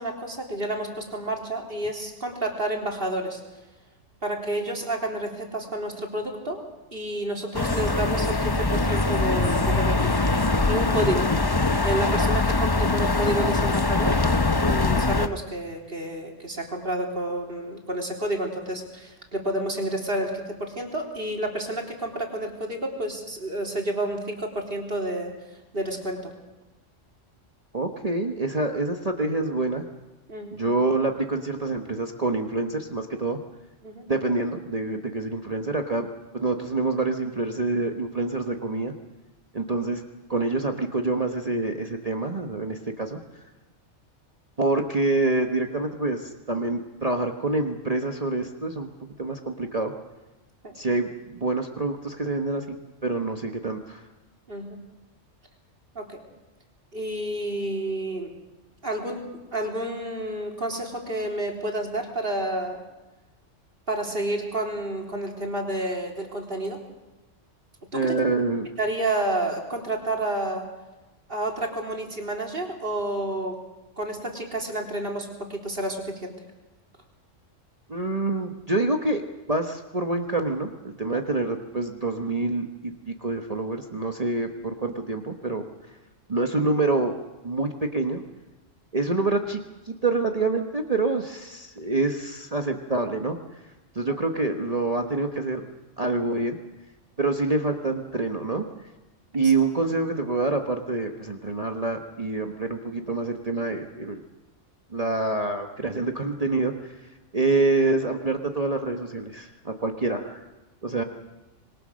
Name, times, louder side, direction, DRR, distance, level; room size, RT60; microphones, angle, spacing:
voice 1, 0.0-3.4 4.2-6.6 6.9-10.1 10.5-11.3 11.8-14.2 14.6-25.3 25.7-26.3 30.3-30.6 33.8-34.1 50.6-50.8 54.5-54.8 56.0-56.2 56.9-58.3 58.8-59.2 59.5-62.8 63.9-66.8 67.9-68.1 68.8-70.7 71.3-73.6 74.0-76.3 81.1-81.2 94.0-94.2 99.4-99.5, right 1 dB, 50° right, 1 dB, 3.9 m, -30 dB
sound 1, 7.5-15.3, left 3 dB, 20° left, 0.8 m, -22 dB
voice 2, 27.7-29.8 30.6-33.4 34.1-36.1 36.3-38.9 39.5-40.0 40.3-43.2 44.6-48.9 49.2-49.9 50.7-52.8 53.0-54.0 67.9-68.7 77.9-79.2 79.5-85.6 86.3-87.1 87.4-88.2 88.9-93.4 93.9-95.7 96.0-96.6 97.2-98.7 99.3-104.2 104.9-107.0 107.3-110.4 110.8-111.0, right 3 dB, 30° right, 4 dB, 1.3 m, -26 dB
26.5 x 22.0 x 6.4 m, 1.1 s
omnidirectional pair, 1.3 m